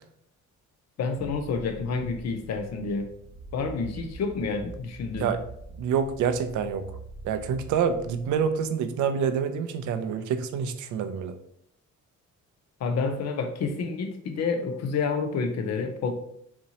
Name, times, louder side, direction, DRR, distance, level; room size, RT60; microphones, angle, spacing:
voice 1, 1.0-3.1 3.5-5.3 12.8-16.1, left 4 dB, 60° left, 6 dB, 0.6 m, -29 dB
sound 1, 1.1-8.7, right 3 dB, 30° left, 1.4 m, -45 dB
voice 2, 5.8-6.9 7.2-11.3, right 7 dB, 80° right, 9 dB, 0.5 m, -27 dB
4.2 x 2.8 x 2.8 m, 0.72 s
cardioid pair, 90°, 30 cm